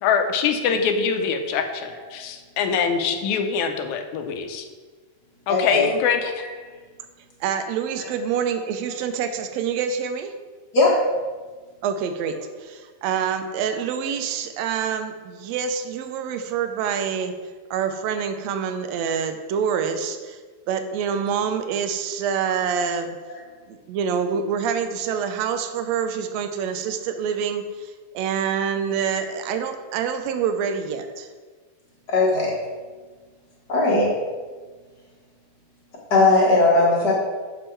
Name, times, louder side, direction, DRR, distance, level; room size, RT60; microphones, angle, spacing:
voice 1, 0.0-4.7 5.5-6.4, left 6 dB, 80° left, 6 dB, 2.1 m, -24 dB
voice 2, 5.5-5.8 10.7-11.0 32.1-32.5 33.7-34.1 36.1-37.1, left 2 dB, 50° left, -3 dB, 1.2 m, -18 dB
voice 3, 7.4-10.3 11.8-17.3 17.7-20.4 20.7-23.2 23.7-31.3, right 7 dB, 75° right, 8 dB, 1.7 m, -26 dB
6.7 x 6.2 x 4.5 m, 1.4 s
omnidirectional pair, 3.5 m